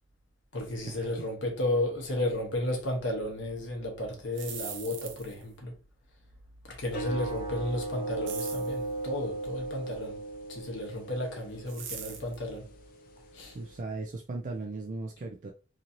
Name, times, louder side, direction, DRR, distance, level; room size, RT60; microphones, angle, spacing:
voice 1, 0.5-5.7 6.6-10.2 10.5-12.7 13.3-13.6, left 1 dB, 80° left, 0.9 m, -33 dB
sound 1, 4.2-5.5 8.3-8.8 11.7-12.4, right 7 dB, 85° right, 0.6 m, -41 dB
sound 2, 6.9-13.8, right 2 dB, 50° left, 0.5 m, -38 dB
voice 2, 13.5-15.5, right 3 dB, 40° right, 0.4 m, -37 dB
2.9 x 2.6 x 2.6 m
head